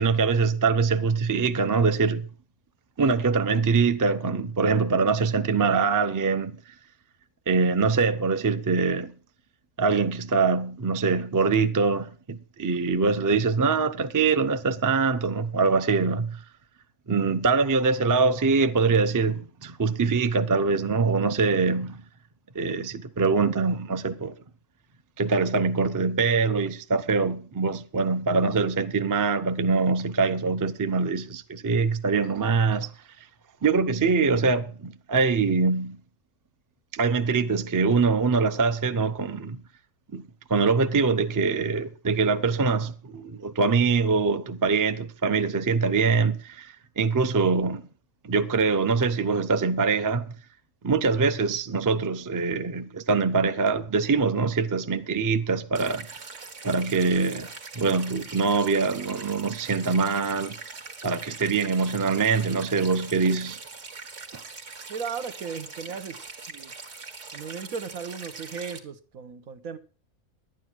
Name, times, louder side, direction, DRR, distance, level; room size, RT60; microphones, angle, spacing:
voice 1, 0.0-2.2 3.0-6.5 7.5-9.1 9.8-16.4 17.1-22.0 22.5-24.3 25.2-32.9 33.6-36.0 36.9-39.6 40.1-40.2 40.5-47.8 48.2-50.3 50.8-56.1 56.6-57.5 57.8-60.5 61.0-63.6 64.3-64.4, right 4 dB, 25° right, 0.4 m, -23 dB
sound 1, 55.7-68.8, right 4 dB, 60° right, 1.9 m, -42 dB
voice 2, 64.9-66.2 66.5-66.7 67.3-69.8, right 6 dB, 80° right, 1.5 m, -36 dB
11.5 x 9.3 x 6.1 m
omnidirectional pair, 1.4 m